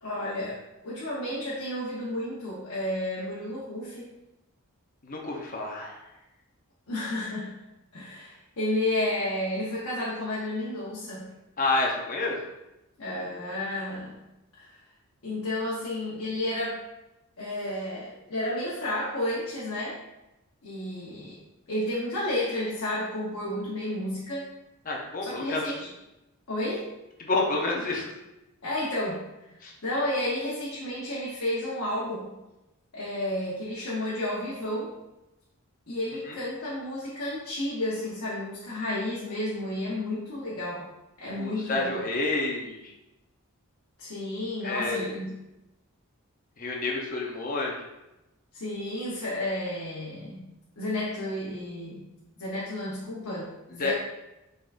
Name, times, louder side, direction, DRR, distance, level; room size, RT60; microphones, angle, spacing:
voice 1, 0.0-4.1 6.9-7.5 7.9-11.3 13.0-14.1 14.6-14.8 15.2-16.8 17.4-20.0 20.6-21.4 21.7-24.5 25.2-25.9 26.5-26.9 28.6-29.2 29.8-32.3 32.9-34.9 35.9-40.9 41.2-42.0 44.0-45.3 48.5-50.5 50.8-52.1 52.4-53.9, left 1 dB, 75° left, -7 dB, 1.0 m, -31 dB
voice 2, 5.0-6.0 11.6-12.4 24.8-25.7 27.2-28.1 29.6-29.7 36.3-36.4 41.4-42.9 44.6-45.2 46.6-47.8 53.8-53.9, left 3 dB, 40° left, -1 dB, 0.8 m, -29 dB
5.6 x 3.7 x 2.5 m, 0.96 s
head